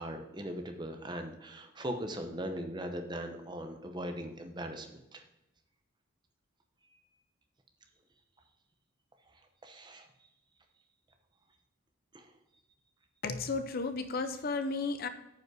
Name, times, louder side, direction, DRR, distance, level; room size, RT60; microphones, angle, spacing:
voice 1, 0.0-5.2 9.6-10.1 12.1-12.3, equal, 20° right, 5 dB, 0.8 m, -39 dB
voice 2, 13.2-15.1, left 3 dB, 45° left, 10 dB, 0.5 m, -33 dB
9.2 x 5.3 x 4.7 m, 0.94 s
head